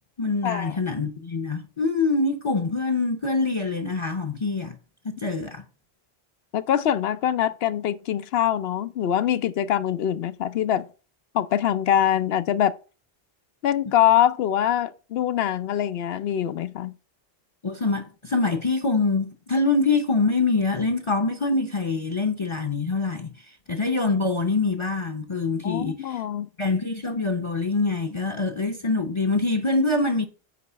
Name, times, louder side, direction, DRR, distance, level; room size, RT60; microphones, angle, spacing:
voice 1, 0.2-4.8 5.0-5.6 17.6-26.2 26.6-30.3, left 3 dB, 30° left, 0.7 m, -25 dB
voice 2, 6.5-10.9 11.3-12.7 13.6-16.9 25.6-26.5, left 11 dB, 75° left, 0.8 m, -23 dB
9.3 x 3.1 x 6.7 m
omnidirectional pair, 1.1 m